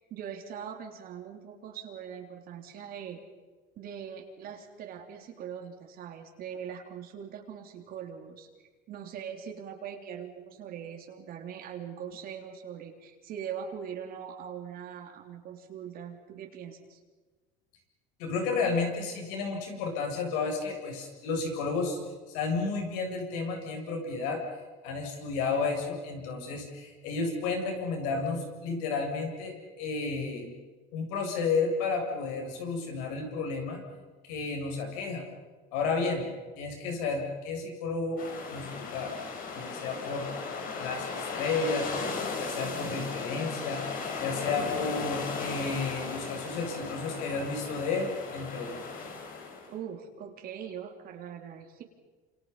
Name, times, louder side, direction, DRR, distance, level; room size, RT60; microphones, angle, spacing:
voice 1, 0.0-3.2 3.8-8.5 8.9-17.0 42.6-43.1 49.7-51.8, right 8 dB, 55° right, 3 dB, 3.4 m, -41 dB
voice 2, 18.2-22.0 22.3-24.4 24.8-30.5 30.9-33.8 34.3-35.3 35.7-36.3 36.6-38.2 38.5-39.1 39.6-40.3 40.8-41.9 42.4-43.8 44.2-48.7, left 4 dB, 90° left, 2 dB, 7.5 m, -32 dB
sound 1, 38.2-49.7, left 5 dB, 50° left, 5.1 m, -36 dB
28.0 x 28.0 x 5.7 m, 1.3 s
cardioid pair, 130°, 19 cm